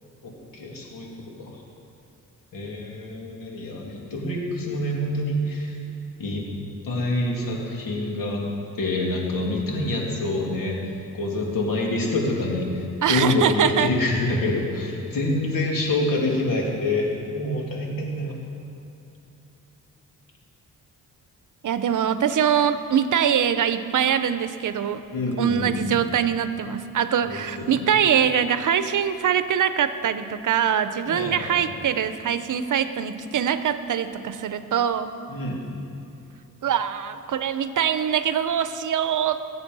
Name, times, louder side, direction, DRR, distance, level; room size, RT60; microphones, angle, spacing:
voice 1, 0.2-1.6 2.5-5.8 6.2-6.4 6.8-8.4 8.8-18.3 25.1-25.9 27.2-28.0 31.1-31.7 35.3-35.6, left 2 dB, 75° left, -2 dB, 3.0 m, -27 dB
voice 2, 13.0-13.9 21.6-25.0 25.4-35.1 36.6-39.4, right 8 dB, 65° right, 11 dB, 0.7 m, -23 dB
21.0 x 8.0 x 5.5 m, 2.7 s
cardioid pair, 100°, 33 cm